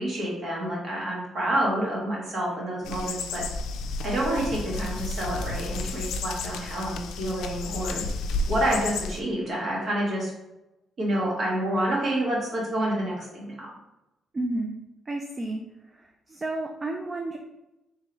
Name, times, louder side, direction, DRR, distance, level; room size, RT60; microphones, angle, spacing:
voice 1, 0.0-3.4 4.0-8.0 8.5-10.3 11.0-13.7, right 1 dB, 55° right, -3 dB, 1.5 m, -28 dB
sound 1, 2.8-9.2, left 2 dB, 85° left, 0.3 m, -32 dB
voice 2, 14.3-14.7 15.1-15.6 16.3-17.4, right 2 dB, 30° right, 2 dB, 0.4 m, -31 dB
3.3 x 3.3 x 3.0 m, 0.94 s
cardioid pair, 90°, 0 cm